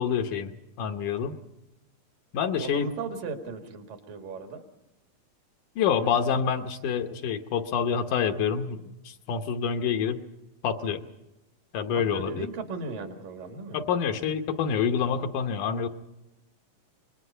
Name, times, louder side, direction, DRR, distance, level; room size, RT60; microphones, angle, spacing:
voice 1, 0.0-1.4 2.3-2.9 5.8-10.2 10.6-11.0 11.7-12.5 13.7-15.9, left 7 dB, 70° left, 6 dB, 2.3 m, -27 dB
voice 2, 2.6-4.6 12.1-13.8, right 4 dB, 70° right, 5 dB, 3.6 m, -36 dB
26.5 x 21.5 x 5.6 m, 0.93 s
omnidirectional pair, 4.0 m